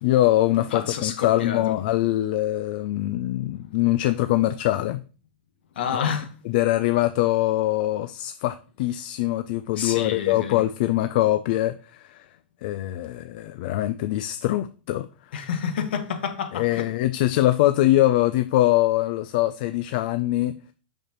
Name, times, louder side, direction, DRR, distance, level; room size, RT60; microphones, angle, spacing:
voice 1, 0.0-5.0 5.9-6.1 6.5-12.3 12.6-15.3 16.5-20.5, left 15 dB, 55° left, 0.4 m, -23 dB
voice 2, 0.7-1.8 5.8-6.3 9.8-10.6 15.3-16.9, left 7 dB, 75° left, 1.4 m, -29 dB
6.5 x 6.1 x 3.0 m
hypercardioid pair, 130°, 6 cm